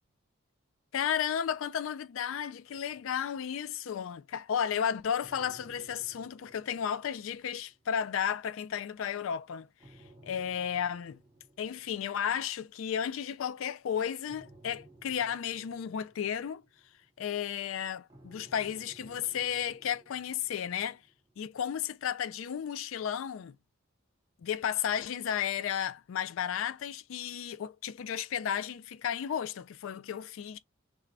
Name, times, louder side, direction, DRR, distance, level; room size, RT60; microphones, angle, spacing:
voice 1, 0.9-9.7 10.2-11.2 11.6-16.6 17.2-21.0 21.4-23.6 24.4-30.6, left 8 dB, 75° left, 0.3 m, -33 dB
sound 1, 2.7-4.0 5.2-8.2 9.8-13.0 14.3-17.5 18.1-21.3, right 1 dB, 20° right, 1.1 m, -58 dB
3.3 x 2.5 x 3.2 m
head